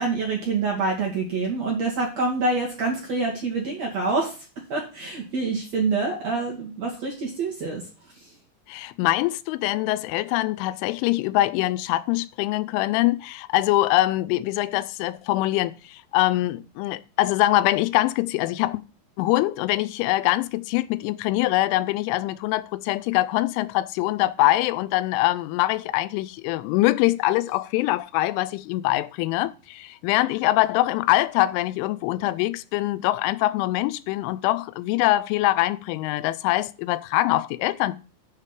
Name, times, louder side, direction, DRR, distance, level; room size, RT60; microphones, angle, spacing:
voice 1, 0.0-4.3 4.7-7.8, right 3 dB, 55° right, 2.0 m, -26 dB
voice 2, 8.7-18.8 19.2-38.0, left 17 dB, 90° left, 3.1 m, -23 dB
8.3 x 4.8 x 7.3 m
omnidirectional pair, 5.4 m